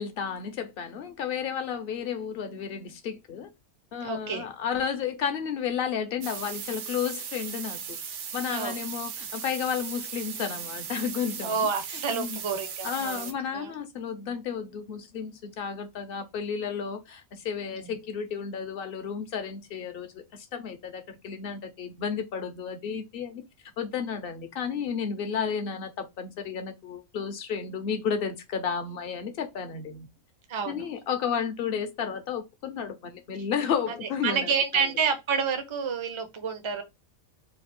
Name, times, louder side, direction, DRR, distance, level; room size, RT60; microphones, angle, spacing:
voice 1, 0.0-3.5 3.9-7.8 8.3-11.6 12.1-12.4 12.8-23.4 23.8-30.1 30.7-34.8, left 7 dB, 55° left, 0.7 m, -32 dB
voice 2, 4.0-4.5 8.5-8.8 11.4-13.7 17.8-17.9 30.5-30.8 34.0-36.8, right 6 dB, 35° right, 0.5 m, -29 dB
sound 1, 6.2-13.3, right 7 dB, 65° right, 0.9 m, -37 dB
3.3 x 2.4 x 4.3 m
omnidirectional pair, 1.4 m